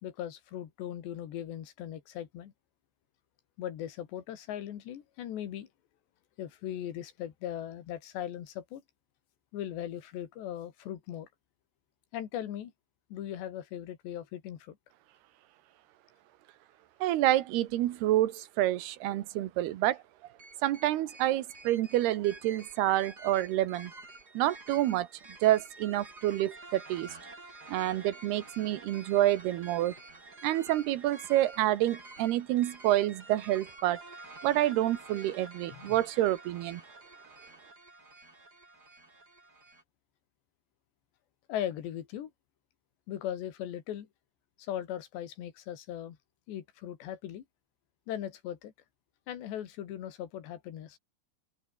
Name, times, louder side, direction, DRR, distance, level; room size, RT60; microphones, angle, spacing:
voice 1, 0.0-2.5 3.6-5.7 6.4-8.8 9.5-11.3 12.1-12.7 13.1-14.8 35.7-36.0 41.5-42.3 43.1-44.1 44.6-46.2 46.5-47.4 48.1-48.7 49.3-51.0, left 11 dB, 85° left, 4.4 m, -39 dB
voice 2, 17.0-20.0 20.6-23.9 24.3-25.1 25.4-27.2 27.7-29.9 30.4-34.0 34.4-36.8, right 14 dB, 75° right, 3.1 m, -28 dB
sound 1, 20.4-39.8, right 2 dB, 20° right, 6.1 m, -50 dB
open air
omnidirectional pair, 4.8 m